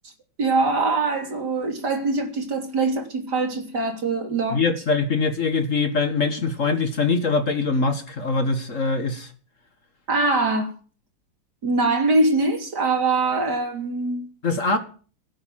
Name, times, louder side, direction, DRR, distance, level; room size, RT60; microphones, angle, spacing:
voice 1, 0.4-4.6 10.1-10.7 11.6-14.3, right 3 dB, 60° right, 3.8 m, -23 dB
voice 2, 4.5-9.3 14.4-14.8, left 4 dB, 45° left, 1.8 m, -23 dB
17.5 x 9.2 x 7.6 m
omnidirectional pair, 2.0 m